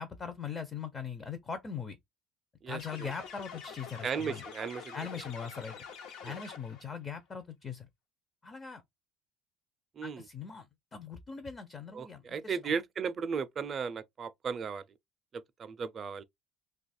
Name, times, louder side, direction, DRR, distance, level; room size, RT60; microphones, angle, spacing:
voice 1, 0.0-2.0 2.7-4.4 4.9-5.8 6.2-7.9 8.4-8.8 10.0-12.7, left 6 dB, 25° left, 0.5 m, -41 dB
voice 2, 2.6-3.1 4.0-5.0 6.2-6.3 10.0-10.3 11.9-14.8 15.3-16.2, right 6 dB, 30° right, 0.4 m, -36 dB
sound 1, 2.8-6.9, left 6 dB, 80° left, 0.9 m, -46 dB
2.8 x 2.3 x 4.1 m
cardioid pair, 150°, 0 cm